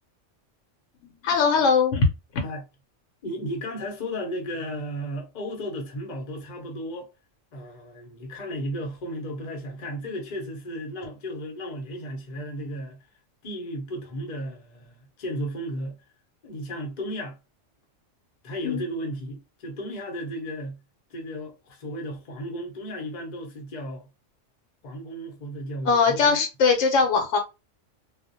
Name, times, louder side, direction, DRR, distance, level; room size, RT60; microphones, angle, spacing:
voice 1, 1.2-2.1 2.3-2.4 18.6-18.8 25.9-27.4, left 4 dB, 70° left, 0.9 m, -20 dB
voice 2, 3.2-7.1 7.5-13.0 13.4-16.0 16.4-17.4 18.4-20.8 21.1-24.1 24.8-26.4, equal, 45° left, 0.7 m, -34 dB
2.4 x 2.0 x 2.6 m
omnidirectional pair, 1.3 m